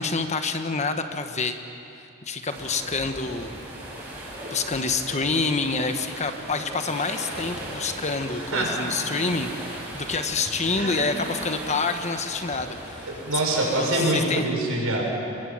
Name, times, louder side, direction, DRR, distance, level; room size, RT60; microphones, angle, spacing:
voice 1, 0.0-1.6 2.3-3.5 4.5-13.1 13.8-14.5, left 4 dB, 35° left, 7 dB, 1.2 m, -27 dB
sound 1, 2.5-14.2, right 1 dB, 10° right, 7.1 m, -38 dB
voice 2, 8.3-8.8 10.7-11.2 13.1-15.0, right 1 dB, 70° right, -2 dB, 7.0 m, -25 dB
27.0 x 22.0 x 7.8 m, 2.8 s
head